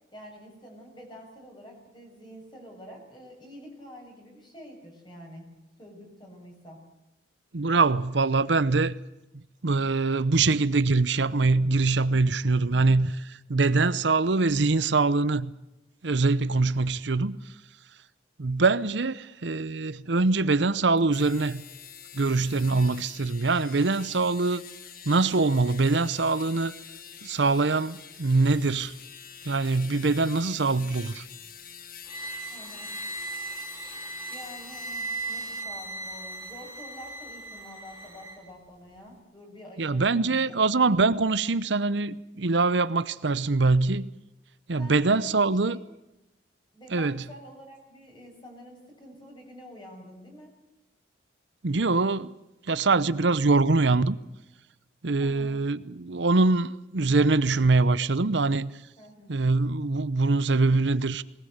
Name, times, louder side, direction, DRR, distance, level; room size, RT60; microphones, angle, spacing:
voice 1, 0.1-5.5 5.8-6.8 32.5-32.9 34.3-40.6 44.8-45.8 46.7-50.6 55.2-55.6 59.0-59.4, equal, 25° left, 7.0 m, -47 dB
voice 2, 7.5-9.0 9.6-15.5 16.0-17.4 18.4-21.6 22.1-24.6 25.1-26.7 27.2-28.9 29.4-31.2 39.8-44.1 44.7-45.8 46.9-47.2 51.6-52.3 52.7-54.2 55.0-58.7 59.3-61.2, right 3 dB, 70° right, 0.8 m, -23 dB
sound 1, 21.0-35.7, left 8 dB, 50° left, 1.5 m, -46 dB
sound 2, 32.1-38.4, right 2 dB, 15° right, 3.7 m, -37 dB
20.5 x 19.5 x 8.0 m
head